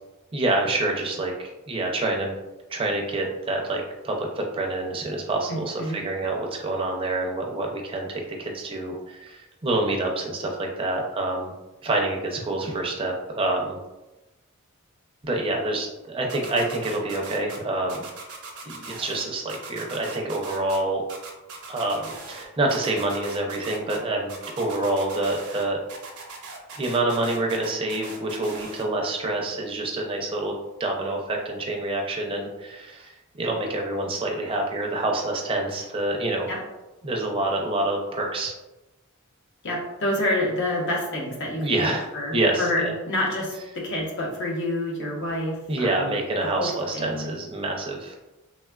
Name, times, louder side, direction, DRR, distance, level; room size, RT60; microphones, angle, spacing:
voice 1, 0.3-2.3 2.7-11.5 11.8-13.8 15.2-18.1 18.6-21.0 21.7-25.8 26.7-30.5 30.8-36.5 37.0-38.5 41.6-42.9 45.7-48.2, right 2 dB, 25° right, 0 dB, 0.4 m, -27 dB
voice 2, 5.5-6.0 36.5-36.6 39.6-47.3, left 1 dB, 60° left, -2 dB, 0.7 m, -28 dB
sound 1, 16.3-17.6 17.9-19.2 19.5-20.8 21.1-22.4 22.7-24.0 24.3-25.6 25.9-28.8, right 4 dB, 80° right, 0.6 m, -40 dB
3.3 x 2.3 x 2.2 m, 1.0 s
head